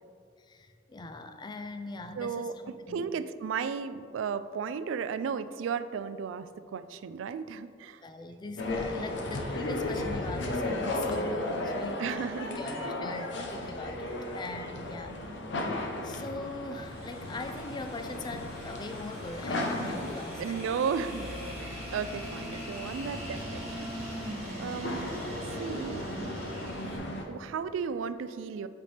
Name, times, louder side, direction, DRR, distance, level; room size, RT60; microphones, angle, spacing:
voice 1, 0.4-2.5 2.9-3.1 8.0-15.2 15.6-15.8 16.0-20.6 22.5-22.7, left 2 dB, 25° left, 7 dB, 0.4 m, -41 dB
voice 2, 2.2-8.0 12.0-12.6 12.8-13.0 20.4-23.9 24.6-25.1 25.6-26.1 27.3-28.7, right 6 dB, 75° right, 13 dB, 0.3 m, -34 dB
sound 1, 8.6-27.2, left 1 dB, 65° left, 0.7 m, -35 dB
sound 2, 16.8-27.0, equal, 35° right, 1.5 m, -43 dB
8.2 x 4.3 x 3.3 m, 2.3 s
head